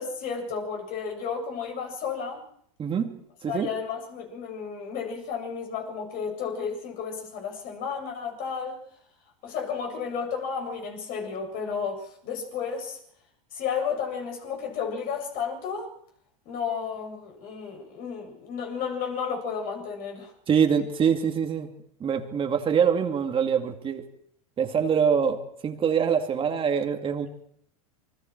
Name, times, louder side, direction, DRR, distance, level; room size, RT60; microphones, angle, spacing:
voice 1, 0.0-2.4 3.5-8.8 9.4-13.0 13.5-15.9 16.5-20.3, left 6 dB, 50° left, 2 dB, 7.4 m, -32 dB
voice 2, 2.8-3.7 20.5-21.7 22.0-24.0 24.6-27.3, right 7 dB, 30° right, 4 dB, 2.4 m, -24 dB
28.0 x 23.5 x 4.7 m, 0.69 s
hypercardioid pair, 110°, 19 cm